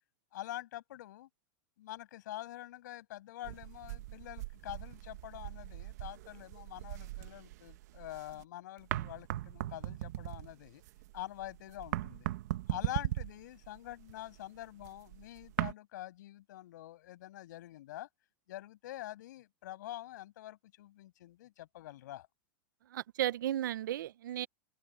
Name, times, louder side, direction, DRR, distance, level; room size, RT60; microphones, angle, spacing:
voice 1, 0.3-1.3 1.8-10.8 11.1-12.3 12.7-18.1 18.5-22.3, left 14 dB, 70° left, 7.5 m, -46 dB
sound 1, 3.4-8.4 8.8-15.7, right 15 dB, 60° right, 1.2 m, -39 dB
voice 2, 22.8-24.5, right 12 dB, 90° right, 0.7 m, -34 dB
open air
supercardioid pair, 165°, 10 cm